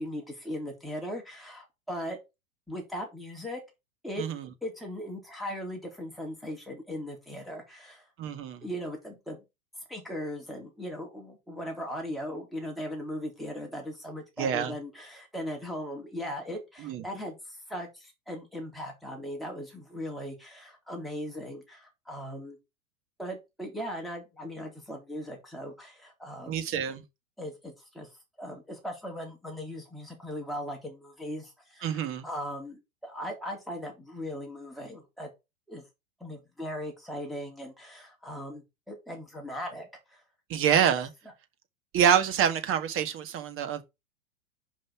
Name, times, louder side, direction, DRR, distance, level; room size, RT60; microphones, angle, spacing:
voice 1, 0.0-2.2 2.7-3.6 4.0-4.2 4.6-8.1 8.6-9.4 9.9-22.6 23.2-26.6 27.4-28.1 28.4-35.3 35.7-35.8 36.2-40.2, equal, ahead, 3.5 m, -38 dB
voice 2, 8.2-8.6 14.4-14.7 16.8-17.0 26.5-27.0 31.8-32.2 40.5-41.1 41.9-43.8, right 8 dB, 30° right, 1.5 m, -26 dB
5.5 x 5.4 x 5.7 m
hypercardioid pair, 115°, 40 cm